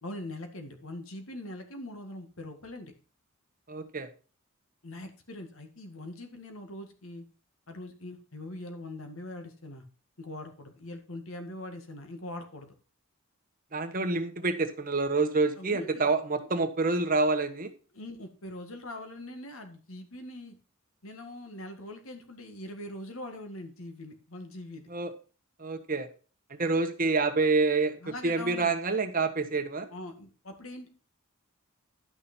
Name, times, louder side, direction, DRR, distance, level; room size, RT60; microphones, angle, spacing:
voice 1, 0.0-2.9 4.8-7.2 7.7-9.8 10.2-12.7 15.6-16.1 17.9-20.6 21.0-24.9 28.0-28.7 29.9-30.9, left 1 dB, 85° left, 6 dB, 1.8 m, -42 dB
voice 2, 3.7-4.1 13.7-17.7 24.9-25.1 25.6-26.1 26.5-27.9 28.2-29.9, right 3 dB, 45° right, 7 dB, 1.3 m, -27 dB
11.5 x 6.2 x 4.4 m, 0.36 s
head